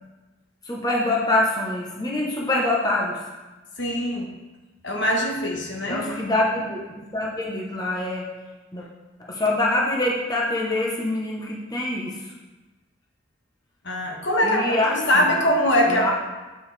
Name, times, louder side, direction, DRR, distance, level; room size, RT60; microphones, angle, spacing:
voice 1, 0.6-3.2 5.9-6.8 7.1-8.3 8.7-8.8 9.2-12.2 14.4-15.3 15.9-16.1, left 2 dB, 20° left, -3 dB, 0.9 m, -25 dB
voice 2, 3.8-4.3 4.8-6.0 13.8-16.1, equal, 60° left, 0 dB, 1.2 m, -22 dB
8.6 x 7.7 x 3.3 m, 1.2 s
head